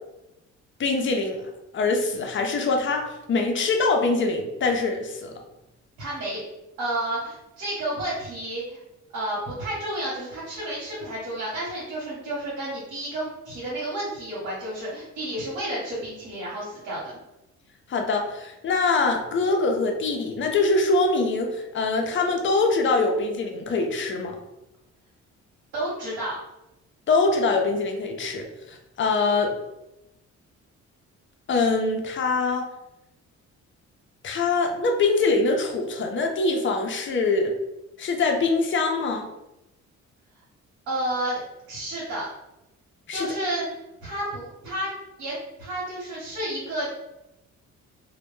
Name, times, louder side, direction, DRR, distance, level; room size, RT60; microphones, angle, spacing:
voice 1, 0.8-1.4 1.7-5.3 17.9-24.4 27.1-29.5 31.5-32.7 34.2-37.5 38.0-39.3 43.1-43.3, left 3 dB, 40° left, 3 dB, 0.5 m, -23 dB
voice 2, 6.0-6.4 6.8-8.8 9.1-17.0 25.7-26.4 40.9-41.4 41.7-42.3 43.1-43.7 44.0-44.9 45.2-47.0, right 1 dB, 80° right, -6 dB, 1.0 m, -31 dB
2.1 x 2.1 x 3.0 m, 0.92 s
cardioid pair, 90°, 30 cm